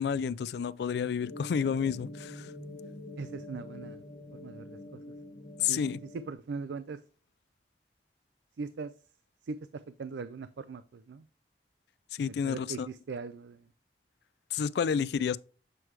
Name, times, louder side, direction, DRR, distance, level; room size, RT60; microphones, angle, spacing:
voice 1, 0.0-2.5 5.6-6.0 12.1-12.9 14.5-15.4, left 7 dB, 70° left, 0.3 m, -30 dB
sound 1, 1.2-6.3, left 1 dB, 35° left, 1.1 m, -46 dB
voice 2, 3.2-4.0 4.3-5.1 5.6-5.8 6.1-7.0 8.6-8.9 9.4-11.3 12.4-13.7, right 4 dB, 85° right, 0.4 m, -40 dB
7.7 x 4.6 x 3.2 m
head